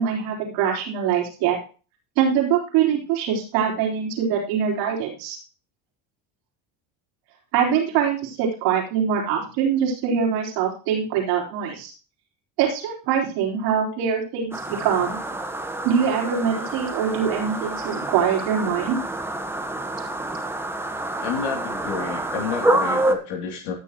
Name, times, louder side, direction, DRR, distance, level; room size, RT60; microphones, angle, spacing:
voice 1, 0.0-1.6 2.2-5.4 7.5-11.9 12.6-15.2 15.8-19.0, right 8 dB, 80° right, -1 dB, 4.2 m, -23 dB
sound 1, 14.5-23.1, right 1 dB, 5° right, 1.2 m, -27 dB
voice 2, 21.2-23.7, left 6 dB, 70° left, 0 dB, 3.0 m, -30 dB
16.0 x 6.7 x 3.0 m, 0.36 s
supercardioid pair, 95°, 42 cm